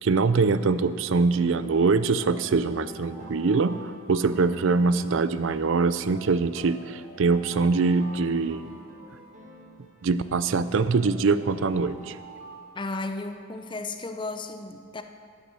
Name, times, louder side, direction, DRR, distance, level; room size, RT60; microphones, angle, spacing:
voice 1, 0.0-3.8 4.1-8.7 10.0-12.2, right 4 dB, 60° right, 13 dB, 0.4 m, -23 dB
sound 1, 0.8-12.1, right 1 dB, 35° right, 1.4 m, -49 dB
Alarm, 1.7-5.4 6.1-9.8 10.4-13.7, right 2 dB, 5° right, 2.5 m, -49 dB
voice 2, 12.7-15.0, left 3 dB, 20° left, 7 dB, 0.6 m, -34 dB
12.5 x 8.3 x 6.3 m, 2.1 s
head